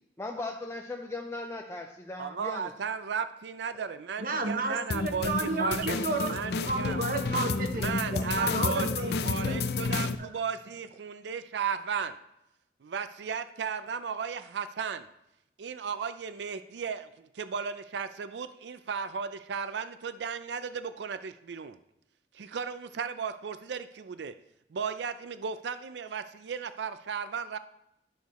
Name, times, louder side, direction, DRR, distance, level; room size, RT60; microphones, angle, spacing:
voice 1, 0.2-2.7, left 2 dB, 15° left, 2 dB, 0.5 m, -38 dB
voice 2, 2.2-5.8 6.2-7.0 7.7-12.2 12.8-15.1 15.6-21.8 22.3-24.3 24.7-27.6, right 6 dB, 80° right, 11 dB, 0.4 m, -35 dB
voice 3, 4.2-6.4 6.6-7.8 8.1-9.6 10.2-10.3, right 2 dB, 50° right, 5 dB, 0.9 m, -31 dB
sound 1, 4.9-10.1, left 4 dB, 65° left, 0.4 m, -31 dB
10.5 x 6.5 x 3.1 m, 0.83 s
head